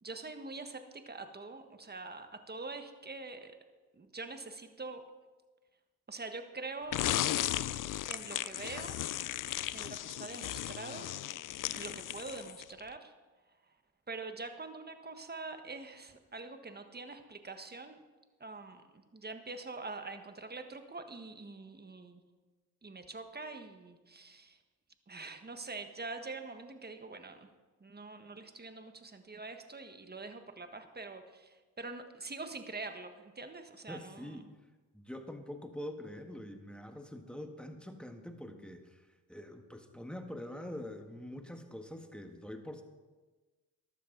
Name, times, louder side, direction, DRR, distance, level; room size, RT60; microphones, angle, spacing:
voice 1, 0.0-3.6 3.9-5.0 6.1-7.0 8.1-9.0 9.5-11.1 11.5-13.1 14.1-18.0 18.4-22.2 22.8-24.6 25.1-27.5 27.8-34.4, right 3 dB, 25° right, 7 dB, 1.5 m, -45 dB
sound 1, 6.9-12.8, left 13 dB, 50° left, 0.5 m, -36 dB
voice 2, 33.9-34.5 34.9-42.8, left 1 dB, ahead, 5 dB, 1.7 m, -45 dB
13.5 x 12.0 x 4.0 m, 1.3 s
supercardioid pair, 55°, 41 cm